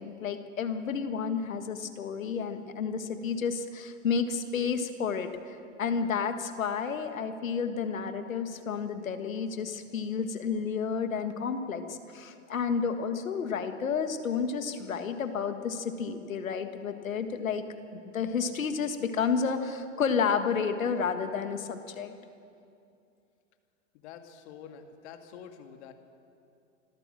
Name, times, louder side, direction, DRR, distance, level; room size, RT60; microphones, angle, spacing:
voice 1, 0.0-17.6 17.9-22.1, left 6 dB, 80° left, 8 dB, 1.8 m, -31 dB
voice 2, 23.9-25.9, left 7 dB, 55° left, 6 dB, 2.1 m, -47 dB
26.5 x 13.0 x 7.6 m, 2.6 s
hypercardioid pair, 105°, 40 cm